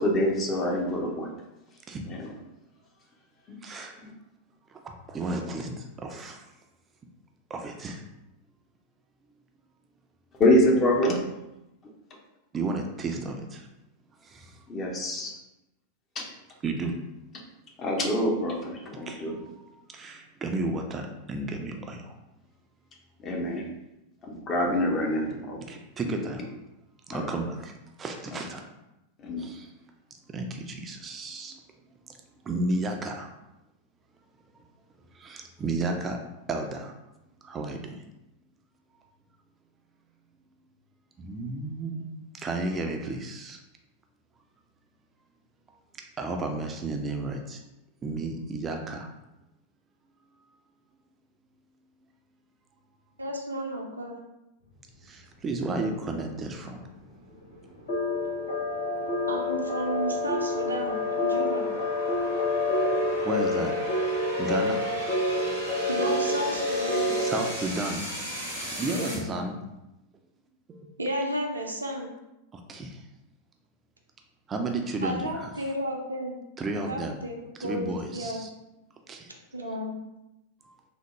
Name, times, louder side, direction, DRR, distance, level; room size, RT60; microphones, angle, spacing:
voice 1, 0.0-1.3 2.1-2.3 3.5-3.6 4.0-4.1 10.4-11.2 14.7-15.3 16.2-16.3 17.8-19.4 23.2-23.6 24.2-25.6 27.1-27.3 29.2-29.5, left 1 dB, 25° left, 0 dB, 0.6 m, -25 dB
voice 2, 3.6-4.0 5.1-6.4 7.5-8.0 12.5-13.6 14.3-14.5 16.6-17.0 19.0-19.2 19.9-22.1 25.7-26.4 27.1-27.7 28.0-28.6 29.4-29.7 30.3-31.5 32.5-33.3 35.2-36.2 36.5-36.9 37.4-38.0 41.2-43.6 46.2-47.6 48.0-49.1 55.1-56.8 63.1-63.7 64.4-64.9 67.2-68.0 68.5-69.6 70.7-70.9 72.7-73.0 74.5-75.5 76.6-77.2 77.6-78.5 79.1-79.3, right 2 dB, 20° right, 3 dB, 0.3 m, -32 dB
voice 3, 53.2-54.2 59.3-61.7 65.9-67.1 68.9-69.3 71.0-72.1 75.0-76.4 76.7-77.3 77.6-78.4 79.5-79.9, equal, 80° right, 1 dB, 0.5 m, -32 dB
sound 1, 54.6-69.2, equal, 90° left, 1.2 m, -40 dB
sound 2, 57.9-67.5, left 2 dB, 65° left, 0.9 m, -28 dB
3.4 x 2.0 x 3.0 m, 0.93 s
figure-of-eight pair, 90°, 0 cm